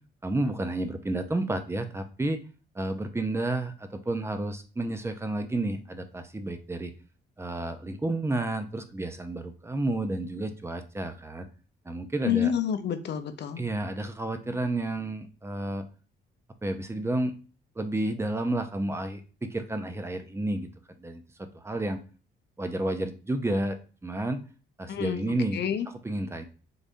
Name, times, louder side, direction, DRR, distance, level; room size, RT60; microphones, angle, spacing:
voice 1, 0.2-2.4 2.7-6.9 7.4-11.5 11.9-12.5 13.6-15.9 16.6-17.4 17.8-20.7 21.0-22.0 22.6-24.4 24.8-25.6 26.0-26.4, right 2 dB, 15° right, 8 dB, 0.6 m, -31 dB
voice 2, 12.2-13.7 24.9-25.9, left 9 dB, 60° left, 9 dB, 0.6 m, -29 dB
3.9 x 2.6 x 3.4 m, 0.35 s
cardioid pair, 90°, 20 cm